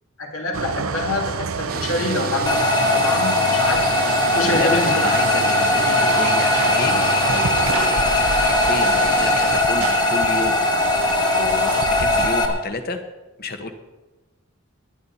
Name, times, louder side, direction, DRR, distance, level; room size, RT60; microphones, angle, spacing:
voice 1, 0.2-3.9 4.3-5.0, left 2 dB, 75° left, 1 dB, 2.8 m, -25 dB
sound 1, 0.5-12.3, right 5 dB, 80° right, 0.7 m, -29 dB
sound 2, 1.7-9.6, right 5 dB, 45° right, 0.8 m, -32 dB
sound 3, 2.5-12.5, left 2 dB, 20° left, 1.3 m, -19 dB
voice 2, 4.3-8.0 8.3-10.6 11.4-13.0 13.4-13.7, left 2 dB, 45° left, 7 dB, 1.2 m, -30 dB
18.5 x 10.5 x 4.3 m, 1.1 s
head